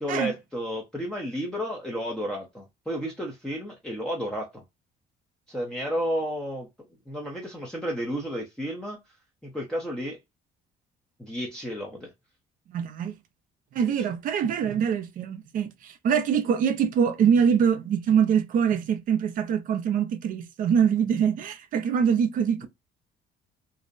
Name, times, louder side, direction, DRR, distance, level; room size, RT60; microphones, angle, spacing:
voice 1, 0.0-4.6 5.5-6.7 7.1-9.0 9.4-10.2 11.2-12.1, equal, 5° left, 0.6 m, -32 dB
voice 2, 12.7-13.1 13.7-22.7, right 7 dB, 55° right, 0.5 m, -24 dB
2.6 x 2.1 x 2.4 m
cardioid pair, 110°, 17 cm